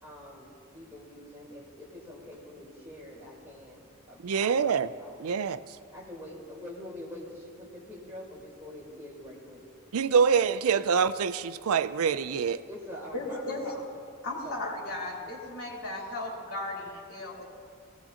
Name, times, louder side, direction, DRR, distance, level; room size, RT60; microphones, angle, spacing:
voice 1, 0.0-4.5 5.0-5.2 5.9-9.6 12.5-13.8 14.4-14.7 15.2-15.3, left 1 dB, 10° right, -6 dB, 3.8 m, -45 dB
voice 2, 4.2-4.9 5.2-5.6 9.9-12.6, right 6 dB, 85° right, 14 dB, 0.4 m, -25 dB
voice 3, 13.1-13.6 14.2-17.4, left 2 dB, 85° left, -3 dB, 3.3 m, -36 dB
19.5 x 17.5 x 2.9 m, 2.2 s
head